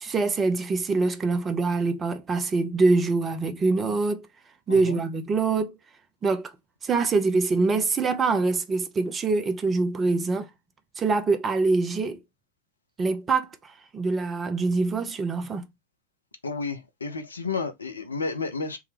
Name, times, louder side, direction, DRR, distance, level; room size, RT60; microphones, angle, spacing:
voice 1, 0.0-4.3 4.7-5.7 6.2-6.5 6.8-10.5 11.0-12.2 13.0-15.6, right 3 dB, 20° right, 0.6 m, -24 dB
voice 2, 4.7-5.0 16.4-18.8, left 4 dB, 75° left, 0.7 m, -31 dB
3.6 x 2.2 x 3.2 m
figure-of-eight pair, 90°, 0 cm